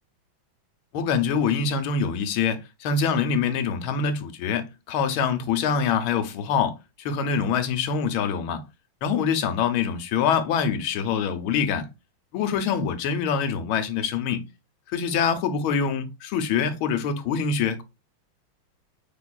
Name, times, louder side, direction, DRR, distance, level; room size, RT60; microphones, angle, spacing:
voice 1, 0.9-8.6 9.0-11.9 12.3-14.4 14.9-17.8, left 6 dB, 85° left, 1.5 m, -25 dB
5.2 x 3.6 x 2.3 m
omnidirectional pair, 2.2 m